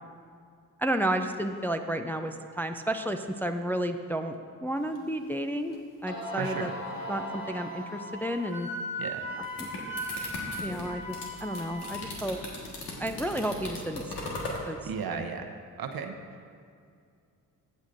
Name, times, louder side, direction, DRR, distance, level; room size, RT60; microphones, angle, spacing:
voice 1, 0.8-4.4 4.6-5.8 6.0-6.7 7.1-8.7 9.6-9.7 10.6-11.2 11.4-12.4 13.0-14.3 14.7-14.8 15.1-15.3, right 1 dB, 5° left, 5 dB, 0.5 m, -31 dB
sound 1, 5.0-5.1 5.7-5.8 6.1-8.5, equal, 50° left, 1.4 m, -39 dB
Wind instrument woodwind instrument, 6.2-12.0, left 1 dB, 30° left, 1.4 m, -38 dB
voice 2, 6.3-6.7 9.0-9.2 14.8-16.2, right 6 dB, 60° right, 6 dB, 0.9 m, -35 dB
sound 2, 9.2-14.6, left 2 dB, 75° left, 1.7 m, -38 dB
15.5 x 6.3 x 2.6 m, 2.3 s
supercardioid pair, 45°, 41 cm